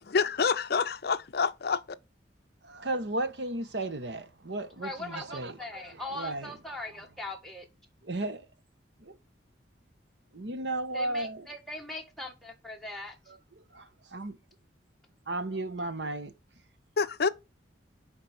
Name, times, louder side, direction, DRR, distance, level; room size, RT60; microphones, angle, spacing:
voice 1, 0.1-1.8 17.0-17.3, left 5 dB, 55° left, 0.5 m, -27 dB
voice 2, 2.6-5.6 5.9-6.6 8.0-8.5 9.0-9.2 10.3-11.5 13.3-14.4 15.3-16.3, right 2 dB, 70° right, 1.1 m, -35 dB
voice 3, 4.8-7.7 10.9-13.2, left 2 dB, ahead, 1.8 m, -40 dB
10.5 x 4.2 x 5.6 m
head